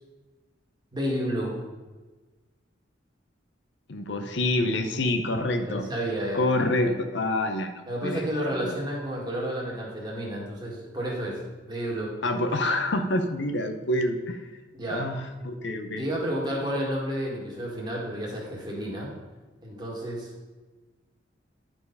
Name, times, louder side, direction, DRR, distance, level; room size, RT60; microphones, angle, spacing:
voice 1, 0.9-1.6 5.6-6.5 7.9-12.2 14.7-15.1 16.0-19.1 19.6-20.3, equal, 20° right, -3 dB, 2.0 m, -31 dB
voice 2, 3.9-5.8 6.3-8.2 8.6-8.7 12.2-14.4 14.9-16.1, left 1 dB, 65° left, 6 dB, 0.7 m, -27 dB
11.0 x 4.5 x 5.4 m, 1.3 s
head